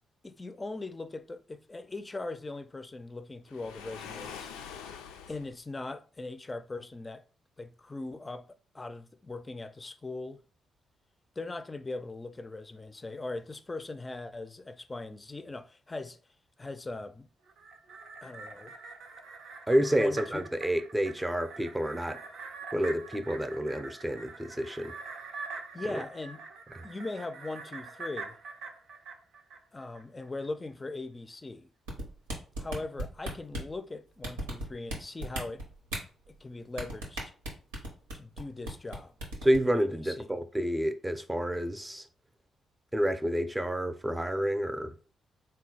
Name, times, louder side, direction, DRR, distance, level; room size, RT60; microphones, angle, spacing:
voice 1, 0.2-4.5 5.3-7.2 7.6-8.5 8.7-10.4 11.4-16.2 16.6-17.3 18.2-18.7 20.0-20.4 25.7-26.4 26.8-28.4 29.7-31.7 32.6-35.6 36.3-37.3 38.1-39.1 39.7-40.3, left 2 dB, 25° left, 0.5 m, -40 dB
Waves surf, 3.5-5.6, left 7 dB, 85° left, 0.4 m, -44 dB
sound 1, 17.5-30.0 30.4-30.5, right 4 dB, 70° right, 0.6 m, -44 dB
voice 2, 19.7-22.2 22.7-25.0 25.9-26.0 39.4-42.1 42.9-45.0, equal, 15° right, 0.6 m, -29 dB
sound 2, 31.9-33.7 34.2-35.0 35.2-36.0 36.8-38.4 38.7-39.0 39.2-39.6, right 1 dB, 90° right, 1.0 m, -34 dB
3.9 x 2.2 x 3.8 m
hypercardioid pair, 45°, 0 cm